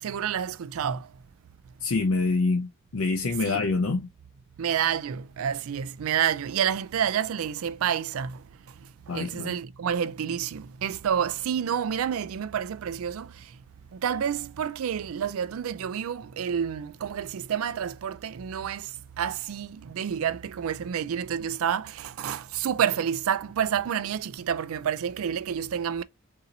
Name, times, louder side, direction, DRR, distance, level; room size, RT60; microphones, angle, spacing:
voice 1, 0.0-1.1 3.4-3.7 4.6-8.4 9.1-13.5 13.9-26.0, right 8 dB, 80° right, 0.4 m, -29 dB
voice 2, 1.8-4.1 9.1-9.5, left 3 dB, 70° left, 0.5 m, -26 dB
4.0 x 2.8 x 3.8 m
head